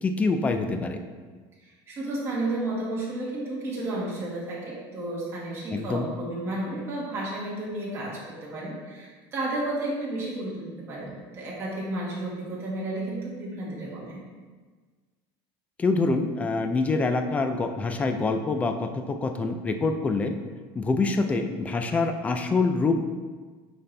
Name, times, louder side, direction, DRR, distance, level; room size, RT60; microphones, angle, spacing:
voice 1, 0.0-1.0 5.7-6.1 15.8-20.3 20.8-23.0, left 3 dB, 10° left, 6 dB, 0.3 m, -25 dB
voice 2, 1.9-14.2, right 2 dB, 20° right, -6 dB, 1.8 m, -32 dB
9.0 x 4.2 x 3.3 m, 1.4 s
cardioid pair, 175°, 12 cm